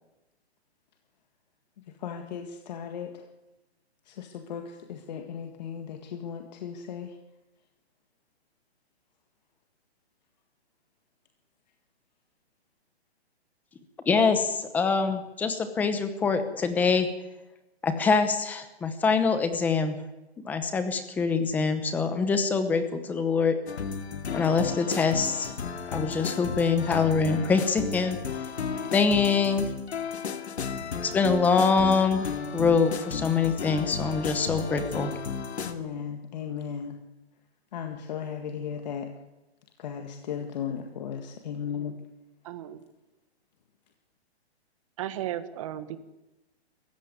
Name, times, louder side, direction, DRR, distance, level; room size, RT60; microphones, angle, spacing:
voice 1, 1.9-3.2 4.0-7.2 35.6-37.0 37.7-39.1 39.8-41.9, left 7 dB, 40° left, 5 dB, 1.8 m, -36 dB
voice 2, 14.1-17.1 17.8-20.0 20.4-23.6 24.3-25.5 25.9-28.2 28.9-29.7 31.0-35.1, left 5 dB, 5° left, 9 dB, 0.8 m, -24 dB
sound 1, 23.7-35.7, left 6 dB, 75° left, 2.5 m, -34 dB
voice 3, 42.4-42.8 45.0-46.0, right 12 dB, 30° right, 12 dB, 1.4 m, -35 dB
22.5 x 15.0 x 9.5 m, 1.0 s
hypercardioid pair, 165°, 33 cm